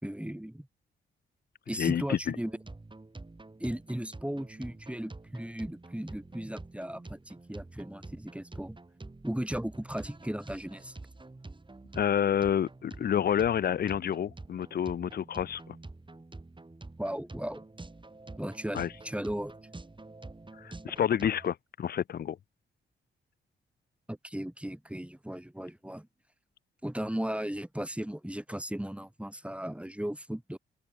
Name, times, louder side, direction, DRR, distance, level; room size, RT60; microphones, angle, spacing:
voice 1, 0.0-0.7 1.7-2.5 3.6-8.8 9.2-11.0 17.0-17.6 18.4-19.5 24.1-26.1 26.8-30.6, right 1 dB, 5° right, 4.8 m, -36 dB
voice 2, 1.8-2.4 11.9-15.8 18.7-18.9 20.6-22.4, left 9 dB, 50° left, 0.5 m, -29 dB
sound 1, 2.5-21.5, right 2 dB, 25° right, 5.2 m, -48 dB
cardioid pair, 60°, 21 cm